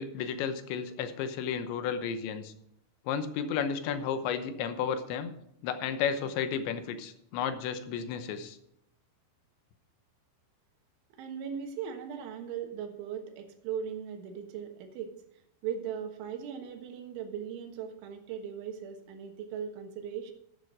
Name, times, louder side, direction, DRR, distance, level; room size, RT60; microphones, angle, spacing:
voice 1, 0.0-2.5 3.1-5.3 5.6-8.6, left 7 dB, 85° left, 9 dB, 3.2 m, -33 dB
voice 2, 11.2-15.1 15.6-20.3, right 8 dB, 90° right, 5 dB, 3.8 m, -38 dB
12.0 x 8.7 x 4.9 m, 0.76 s
omnidirectional pair, 5.3 m